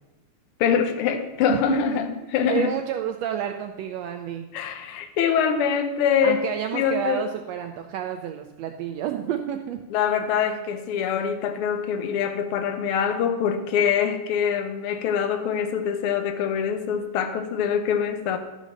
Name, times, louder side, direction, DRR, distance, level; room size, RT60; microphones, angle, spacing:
voice 1, 0.6-2.7 4.5-6.4 6.7-7.3 9.9-18.4, left 7 dB, 90° left, 7 dB, 1.2 m, -24 dB
voice 2, 1.5-2.0 2.4-4.5 6.2-9.8, right 10 dB, 80° right, 6 dB, 1.5 m, -30 dB
12.5 x 5.2 x 6.4 m, 1.0 s
omnidirectional pair, 3.6 m